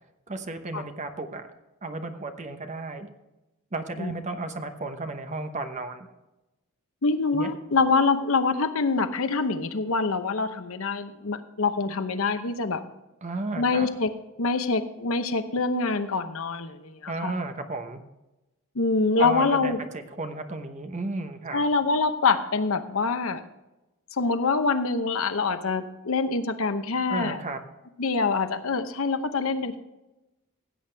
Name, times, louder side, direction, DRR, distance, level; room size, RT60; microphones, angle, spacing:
voice 1, 0.3-1.5 1.8-3.1 3.7-6.1 7.3-7.5 13.2-13.9 17.1-18.0 19.2-21.6 27.1-27.6, right 3 dB, 35° right, 7 dB, 1.0 m, -33 dB
voice 2, 7.0-12.8 13.6-14.1 14.4-17.3 18.7-19.8 21.5-23.4 24.1-27.4 28.0-29.8, left 4 dB, 70° left, 10 dB, 0.8 m, -25 dB
16.0 x 8.4 x 3.4 m, 1.0 s
head